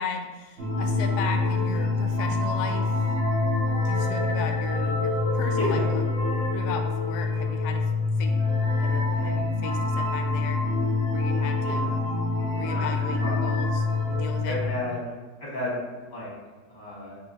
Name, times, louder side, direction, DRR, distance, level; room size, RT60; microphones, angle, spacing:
voice 1, 0.0-3.1 3.9-6.0 6.4-7.8 8.2-8.3 8.7-10.7 11.1-11.9 12.5-14.6, left 5 dB, 75° left, 4 dB, 1.0 m, -36 dB
sound 1, 0.6-14.7, left 3 dB, 50° right, 1.9 m, -26 dB
voice 2, 12.6-13.4 14.4-15.1 15.4-15.8 16.1-16.3 16.7-17.2, left 1 dB, 30° left, -6 dB, 1.5 m, -32 dB
5.8 x 3.0 x 2.8 m, 1.3 s
omnidirectional pair, 1.7 m